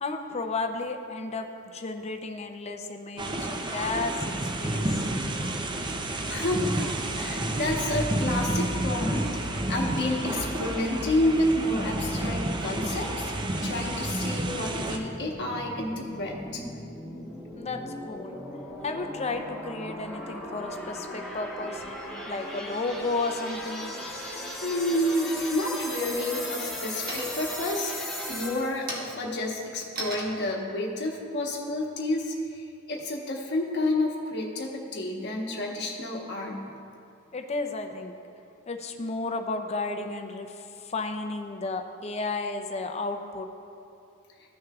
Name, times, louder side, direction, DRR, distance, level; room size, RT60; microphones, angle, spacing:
voice 1, 0.0-4.8 17.5-17.8 18.1-18.4 18.8-21.8 22.3-24.0 37.3-38.1 38.7-43.5, left 3 dB, 30° left, 6 dB, 0.5 m, -33 dB
sound 1, 3.2-15.0, right 1 dB, 20° right, 0.5 m, -30 dB
voice 2, 6.3-13.3 13.6-16.6 24.6-36.6, left 1 dB, 55° left, 0 dB, 1.2 m, -30 dB
sound 2, 14.9-28.9, left 1 dB, ahead, 1.3 m, -37 dB
sound 3, 27.1-27.6 28.1-32.5, right 2 dB, 45° right, 1.4 m, -39 dB
15.0 x 6.3 x 2.4 m, 2.6 s
head